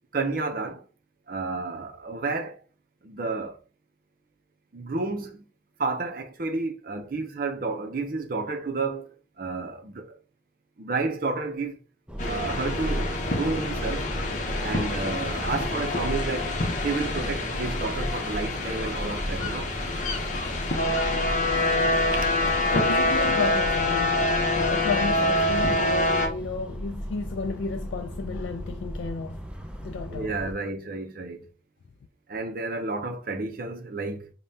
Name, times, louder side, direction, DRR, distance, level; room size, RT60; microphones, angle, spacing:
voice 1, 0.1-0.8 1.3-2.6 3.0-3.6 4.7-5.4 5.8-10.2 10.8-11.8 12.2-14.1 14.6-16.6 16.8-19.7 30.1-31.5 32.3-34.3, right 3 dB, 50° right, 0.6 m, -31 dB
sound 1, 12.1-30.5, equal, 5° right, 0.4 m, -35 dB
sound 2, 12.2-26.3, left 2 dB, 40° left, 0.8 m, -26 dB
voice 2, 22.7-29.4 29.8-30.7, left 4 dB, 75° left, 0.3 m, -32 dB
5.3 x 2.2 x 2.7 m
head